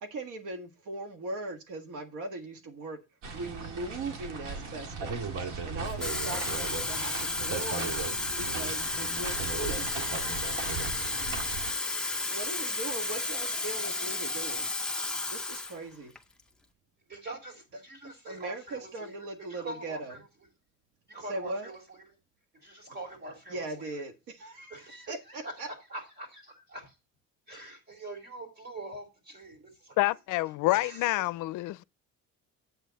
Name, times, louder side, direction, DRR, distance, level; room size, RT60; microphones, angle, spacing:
voice 1, 0.0-3.0 3.3-5.3 5.6-8.0 8.4-9.9 11.1-11.2 12.3-14.7 15.3-16.1 18.3-20.1 21.3-21.7 23.5-24.8 25.1-25.7, right 2 dB, 75° right, 1.7 m, -39 dB
sound 1, 3.2-11.7, right 4 dB, 90° right, 2.1 m, -37 dB
Water tap faucet / Fill (with liquid), 5.9-15.8 16.2-16.4, left 2 dB, 5° left, 0.6 m, -33 dB
voice 2, 17.1-20.3 21.1-22.2 22.5-24.0 24.7-27.0 27.5-30.1 30.7-31.1, right 2 dB, 30° right, 3.4 m, -44 dB
voice 3, 30.0-31.8, left 19 dB, 80° left, 0.5 m, -27 dB
8.3 x 8.1 x 4.0 m
cardioid pair, 160°, 31 cm